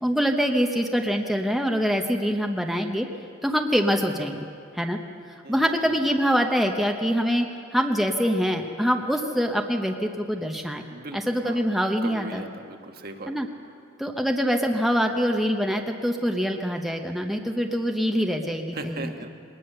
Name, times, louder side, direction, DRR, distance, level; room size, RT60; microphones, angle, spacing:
voice 1, 0.0-3.1 3.4-4.5 4.7-5.0 5.3-10.9 11.1-12.4 13.3-13.5 14.0-19.1, equal, ahead, 3 dB, 0.8 m, -24 dB
voice 2, 5.4-5.9 10.9-11.6 12.0-13.3 14.9-15.2 18.7-19.3, right 2 dB, 50° right, 5 dB, 1.4 m, -38 dB
21.0 x 19.5 x 6.7 m, 2.3 s
head